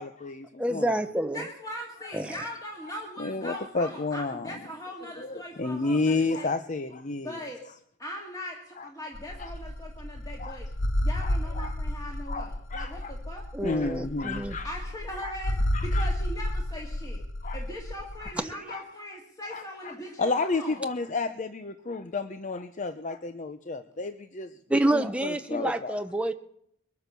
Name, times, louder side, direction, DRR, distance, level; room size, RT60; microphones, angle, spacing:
voice 1, 0.0-1.0 3.2-4.5 5.2-7.4 8.8-8.9 9.4-9.5 10.4-10.6 11.2-11.8 12.3-13.1 13.6-14.7 15.2-15.3 15.7-16.1 17.4-17.6 18.2-18.3 18.7-18.8 19.5-19.9 20.2-24.5 24.9-26.0, left 3 dB, 35° left, 9 dB, 0.6 m, -31 dB
voice 2, 0.6-1.4 2.1-2.4 13.5-14.6 24.7-26.3, right 1 dB, 5° right, 7 dB, 0.5 m, -27 dB
voice 3, 1.3-6.5 7.2-7.6 8.0-10.7 11.0-13.5 14.6-17.2 17.5-20.8, equal, 15° left, -1 dB, 2.0 m, -40 dB
sound 1, 9.1-18.3, left 1 dB, 60° left, 0.9 m, -31 dB
22.0 x 9.5 x 6.8 m, 0.72 s
head